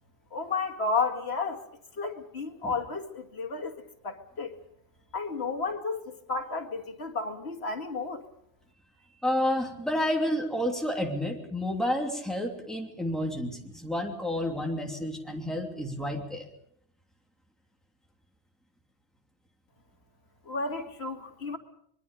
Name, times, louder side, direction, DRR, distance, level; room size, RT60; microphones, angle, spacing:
voice 1, 0.3-1.6 2.0-3.7 4.0-4.6 5.1-8.2 20.5-21.6, left 4 dB, 65° left, 4 dB, 2.4 m, -32 dB
voice 2, 9.2-16.5, left 1 dB, ahead, 1 dB, 2.9 m, -30 dB
25.5 x 22.5 x 5.4 m, 0.71 s
omnidirectional pair, 1.2 m